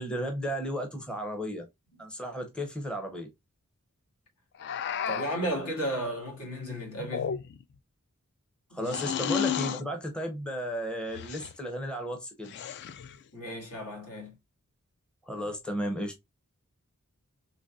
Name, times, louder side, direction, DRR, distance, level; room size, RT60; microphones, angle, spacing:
voice 1, 0.0-1.7 2.0-3.3 8.7-12.5 15.3-16.1, equal, 5° left, 0.6 m, -34 dB
sound 1, 4.6-5.5 7.0-7.7 8.9-9.9 11.1-11.5 12.4-13.2, left 8 dB, 50° left, 0.3 m, -32 dB
voice 2, 5.1-7.4 8.8-9.0 13.3-14.3, right 1 dB, 80° left, 2.1 m, -34 dB
3.9 x 3.0 x 2.3 m
head